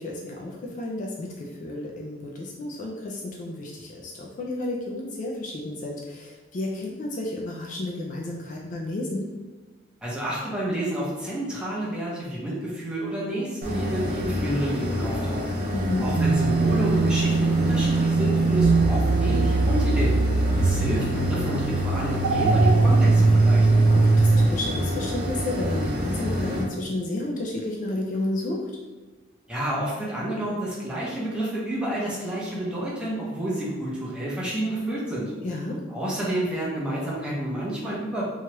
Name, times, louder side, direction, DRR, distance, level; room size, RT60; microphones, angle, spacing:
voice 1, 0.0-9.3 15.7-16.1 23.9-28.7 35.4-35.8, left 2 dB, 45° left, -1 dB, 0.3 m, -32 dB
voice 2, 10.0-15.4 16.0-20.2 20.6-23.7 29.5-35.3 35.9-38.2, right 1 dB, 5° right, -7 dB, 0.7 m, -29 dB
sound 1, 13.6-26.6, left 1 dB, 45° right, 0.7 m, -28 dB
sound 2, 16.1-24.5, right 3 dB, 85° right, 0.3 m, -21 dB
3.0 x 2.3 x 2.9 m, 1.2 s
head